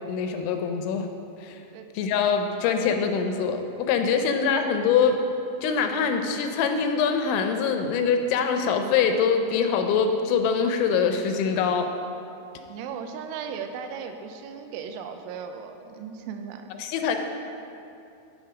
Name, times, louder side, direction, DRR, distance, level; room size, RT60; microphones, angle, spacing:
voice 1, 0.1-1.1 1.4-1.6 2.0-5.2 5.6-11.9 16.8-17.2, left 6 dB, 85° left, 6 dB, 3.0 m, -24 dB
voice 2, 12.7-16.7, right 6 dB, 85° right, 6 dB, 3.0 m, -37 dB
11.0 x 5.8 x 5.0 m, 2.6 s
omnidirectional pair, 5.4 m